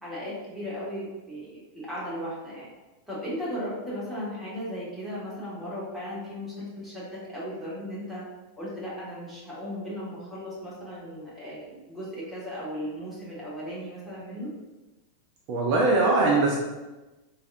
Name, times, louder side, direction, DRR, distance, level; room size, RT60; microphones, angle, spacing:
voice 1, 0.0-2.7 3.1-8.2 8.6-14.5, equal, ahead, -9 dB, 1.2 m, -36 dB
voice 2, 15.5-16.6, right 2 dB, 40° right, -2 dB, 0.4 m, -21 dB
3.3 x 2.3 x 2.5 m, 1.1 s
figure-of-eight pair, 90°, 0 cm